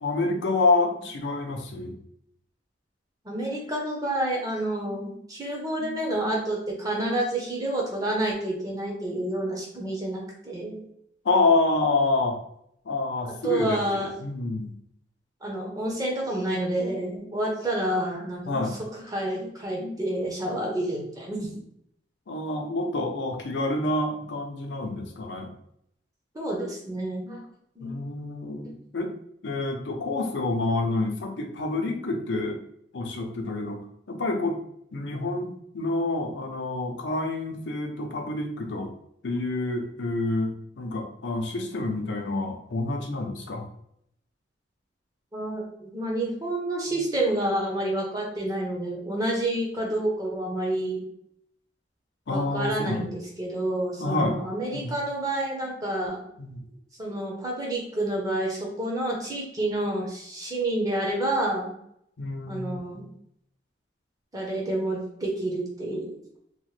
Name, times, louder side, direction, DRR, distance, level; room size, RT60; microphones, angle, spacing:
voice 1, 0.0-1.9 11.2-12.4 12.8-14.7 18.5-18.8 22.3-25.5 27.8-29.1 29.4-32.6 32.9-33.8 34.1-34.6 34.9-38.9 39.2-43.7 52.3-53.1 54.0-54.4 54.7-54.9 56.4-56.6 62.2-63.0, left 2 dB, 75° left, 3 dB, 0.5 m, -28 dB
voice 2, 3.2-10.8 13.4-14.1 15.4-18.6 18.9-21.6 26.3-27.5 27.8-28.0 28.6-28.7 45.3-51.0 52.3-56.2 57.0-61.7 62.5-63.1 64.3-66.1, right 1 dB, 20° right, -2 dB, 0.7 m, -29 dB
2.9 x 2.1 x 3.1 m, 0.72 s
head